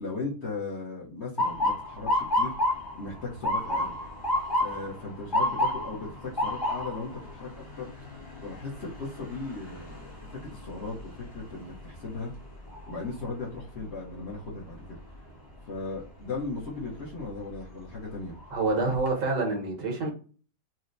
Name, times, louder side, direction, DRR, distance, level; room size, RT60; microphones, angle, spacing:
voice 1, 0.0-2.5 3.0-4.1 4.6-12.3 12.9-14.8 15.7-18.4, left 3 dB, 50° left, 0.9 m, -37 dB
Motor vehicle (road) / Siren, 1.4-13.3 13.7-14.2 14.9-15.3 17.1-17.4 17.9-18.0 18.4-19.1, left 1 dB, 20° left, 0.6 m, -31 dB
voice 2, 18.5-20.1, right 3 dB, 75° right, 1.7 m, -27 dB
4.2 x 2.1 x 2.5 m
omnidirectional pair, 1.9 m